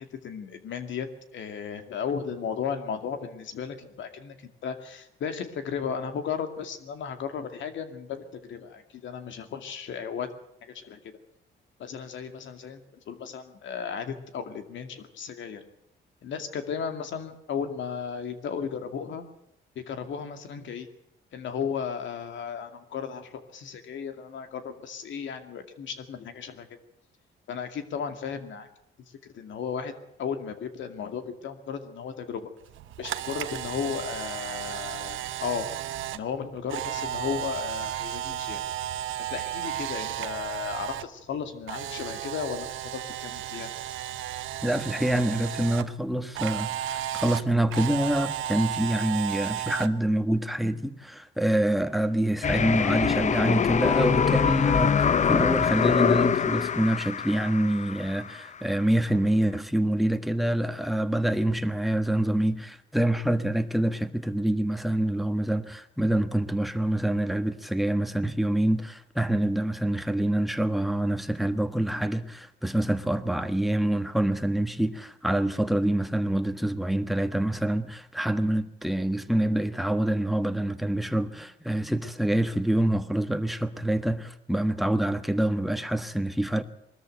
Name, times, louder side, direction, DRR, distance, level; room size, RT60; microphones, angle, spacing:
voice 1, 0.0-10.3 10.6-11.2 11.8-15.6 16.2-19.2 19.8-20.9 21.3-26.7 27.5-28.7 29.1-32.5 33.0-35.7 36.1-38.6 39.3-43.7, left 7 dB, 70° left, 2.4 m, -35 dB
Camera, 32.7-41.0 41.3-45.8 46.4-49.9, right 12 dB, 80° right, 1.0 m, -34 dB
voice 2, 44.6-86.6, right 1 dB, ahead, 1.5 m, -26 dB
sound 1, 52.4-58.4, left 7 dB, 35° left, 0.7 m, -24 dB
21.0 x 13.5 x 9.2 m
cardioid pair, 90°, 20 cm